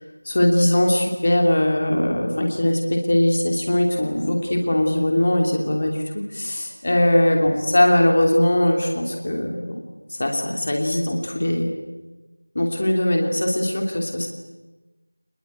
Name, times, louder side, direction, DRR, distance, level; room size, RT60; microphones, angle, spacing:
voice 1, 0.2-9.8 10.1-11.7 12.5-14.3, left 1 dB, 30° left, 2 dB, 2.9 m, -20 dB
25.0 x 21.5 x 9.2 m, 1.1 s
figure-of-eight pair, 180°, 0 cm